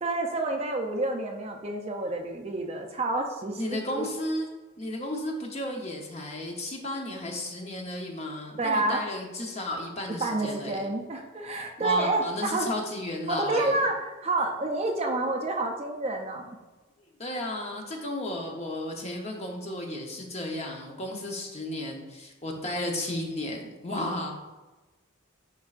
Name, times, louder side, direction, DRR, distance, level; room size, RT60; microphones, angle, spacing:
voice 1, 0.0-4.1 8.6-9.0 10.2-12.7 13.3-16.5, right 2 dB, 30° right, 3 dB, 0.5 m, -29 dB
voice 2, 3.6-4.5 4.8-10.9 11.8-13.7 17.2-24.3, left 1 dB, 30° left, 1 dB, 0.8 m, -33 dB
10.5 x 3.6 x 2.4 m, 1.2 s
head